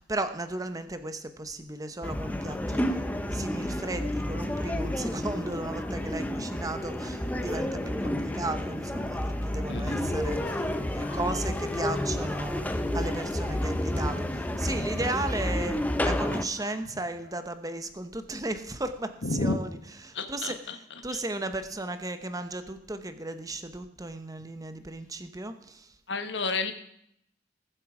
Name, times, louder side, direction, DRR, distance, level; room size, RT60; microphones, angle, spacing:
voice 1, 0.0-3.0 3.3-12.6 12.9-19.1 19.4-19.7 20.0-25.9, right 2 dB, 20° right, 9 dB, 0.9 m, -35 dB
sound 1, 2.0-16.4, left 1 dB, 10° left, 0.7 m, -30 dB
voice 2, 9.7-10.1 10.4-10.6 11.0-11.2 16.6-16.7 19.2-19.5 20.1-20.8 21.1-21.2 26.1-26.7, left 3 dB, 70° left, 8 dB, 1.3 m, -31 dB
19.5 x 7.7 x 4.9 m, 0.73 s
head